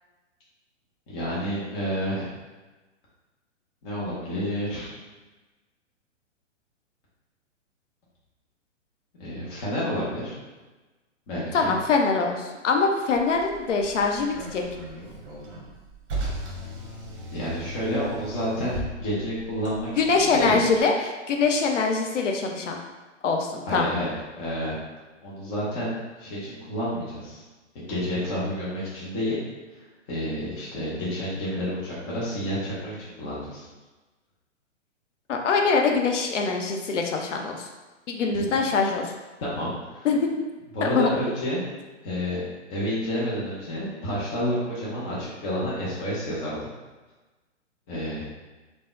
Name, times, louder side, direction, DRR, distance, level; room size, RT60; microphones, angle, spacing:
voice 1, 1.1-2.3 3.8-4.9 9.2-10.4 11.3-11.7 17.3-19.9 20.1-20.6 23.7-24.1 24.4-24.8 25.2-25.9 26.2-27.4 27.7-29.4 30.1-33.6 38.3-38.5 39.4-40.1 40.7-41.6 42.0-42.4 42.7-46.7 47.9-48.2, equal, 10° left, -8 dB, 0.3 m, -29 dB
voice 2, 11.5-14.6 20.0-22.8 23.2-23.9 35.3-37.7 38.1-39.1 40.0-40.2 40.8-41.1, left 4 dB, 80° left, 2 dB, 0.5 m, -23 dB
Car, 13.1-20.8, right 1 dB, 45° right, 0.9 m, -37 dB
3.4 x 2.0 x 2.3 m, 1.2 s
hypercardioid pair, 120°, 37 cm